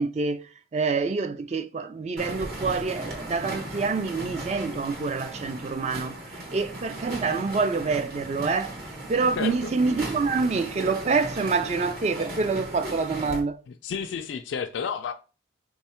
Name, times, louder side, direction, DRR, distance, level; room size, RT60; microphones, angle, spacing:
voice 1, 0.0-8.8 9.1-13.6, right 4 dB, 35° right, 0.3 m, -27 dB
sound 1, 2.2-13.4, right 1 dB, 50° right, 1.0 m, -37 dB
voice 2, 9.4-9.7 13.7-15.1, left 6 dB, 75° left, 0.3 m, -31 dB
3.4 x 2.3 x 4.3 m
head